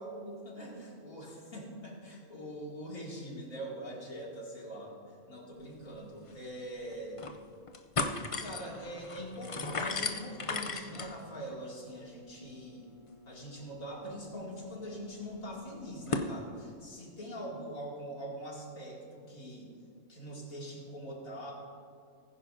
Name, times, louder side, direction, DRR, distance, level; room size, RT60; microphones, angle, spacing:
voice 1, 0.0-5.0 5.3-7.2 8.4-12.9 13.3-19.7 20.1-21.5, equal, 75° left, -4 dB, 3.0 m, -43 dB
sound 1, 5.9-6.0 6.3-6.4 6.9-7.4 7.7-16.3, left 3 dB, 45° left, 0.4 m, -39 dB
19.5 x 10.0 x 2.7 m, 2.3 s
omnidirectional pair, 1.5 m